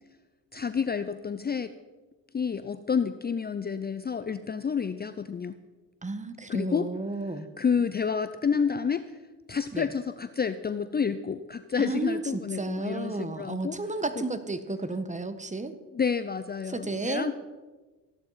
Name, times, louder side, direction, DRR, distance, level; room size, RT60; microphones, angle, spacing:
voice 1, 0.5-1.7 2.3-5.6 6.5-6.9 7.6-9.1 9.5-13.8 15.9-17.3, left 6 dB, 25° left, 12 dB, 0.6 m, -29 dB
voice 2, 6.0-7.5 9.7-9.9 11.8-15.7 16.7-17.3, right 3 dB, 15° right, 11 dB, 1.3 m, -32 dB
15.5 x 11.5 x 4.9 m, 1.2 s
supercardioid pair, 70°, 41 cm